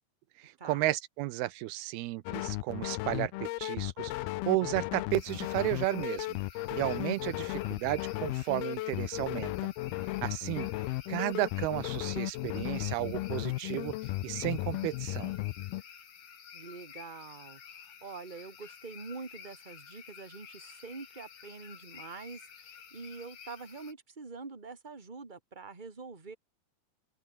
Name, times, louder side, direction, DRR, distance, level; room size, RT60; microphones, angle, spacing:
voice 1, 0.4-4.1 4.5-6.4 6.7-9.7 10.2-10.7 11.1-14.0 14.2-15.3, right 17 dB, 85° right, 2.9 m, -33 dB
sound 1, 2.3-15.8, left 18 dB, 85° left, 2.7 m, -35 dB
sound 2, 5.1-23.9, left 8 dB, 60° left, 4.4 m, -52 dB
voice 2, 16.5-26.4, right 4 dB, 15° right, 2.3 m, -45 dB
omnidirectional pair, 4.4 m